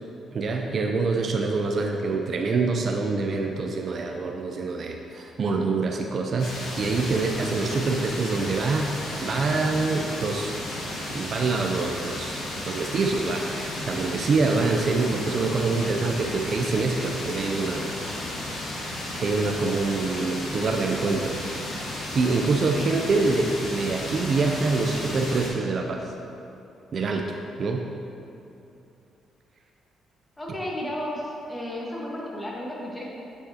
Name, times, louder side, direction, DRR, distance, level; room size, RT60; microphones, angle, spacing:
voice 1, 0.3-9.0 9.2-10.5 11.1-17.9 19.1-21.4 22.1-26.1 26.9-27.8, right 3 dB, 50° right, 3 dB, 0.4 m, -25 dB
sound 1, 6.4-25.5, left 1 dB, 80° left, 1.5 m, -33 dB
voice 2, 30.4-33.1, left 1 dB, 15° left, -4 dB, 1.4 m, -33 dB
8.9 x 4.8 x 2.8 m, 2.8 s
cardioid pair, 90°, 0 cm